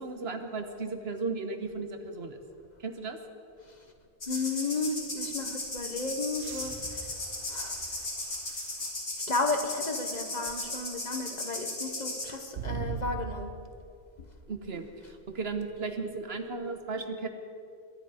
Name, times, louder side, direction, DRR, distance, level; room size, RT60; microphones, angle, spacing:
voice 1, 0.0-2.4 2.8-3.2 14.5-14.9 15.3-17.3, right 4 dB, 65° right, 7 dB, 1.3 m, -35 dB
sound 1, 4.2-12.3, left 2 dB, 75° left, 2.8 m, -36 dB
voice 2, 4.3-7.1 7.5-7.8 8.3-8.4 9.2-13.5, left 3 dB, 40° left, 6 dB, 1.2 m, -33 dB
sound 2, 6.3-9.1 9.7-9.8 12.5-13.8 15.6-15.7, right 7 dB, 90° right, 1.1 m, -41 dB
22.5 x 10.5 x 5.0 m, 2.5 s
omnidirectional pair, 1.1 m